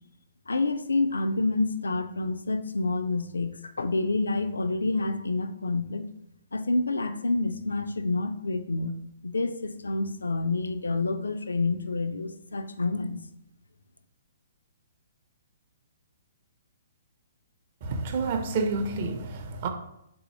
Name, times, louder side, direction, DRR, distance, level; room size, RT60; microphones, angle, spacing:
voice 1, 0.5-6.1 6.5-8.9 9.2-13.2, left 3 dB, 70° left, 0.3 m, -28 dB
voice 2, 17.8-19.7, right 3 dB, 40° right, 0.5 m, -29 dB
4.0 x 2.7 x 4.2 m
figure-of-eight pair, 120°, 0 cm